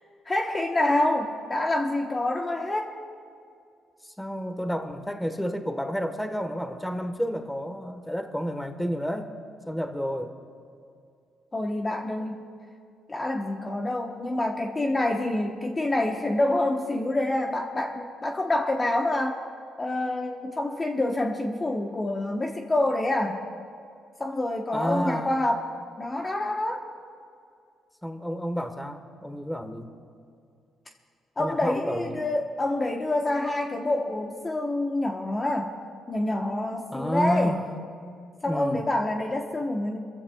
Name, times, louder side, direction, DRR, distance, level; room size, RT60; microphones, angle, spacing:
voice 1, 0.3-2.9 11.5-12.4 13.1-19.4 19.8-23.4 24.2-25.7 26.0-26.8 31.4-35.8 36.1-37.6 38.4-40.0, left 1 dB, 25° left, 2 dB, 1.0 m, -27 dB
voice 2, 4.0-9.3 9.6-10.3 24.7-25.3 28.0-29.9 31.4-32.2 36.9-37.6 38.5-38.8, equal, 5° left, 6 dB, 1.3 m, -30 dB
29.0 x 15.0 x 2.3 m, 2.4 s
cardioid pair, 90°, 0 cm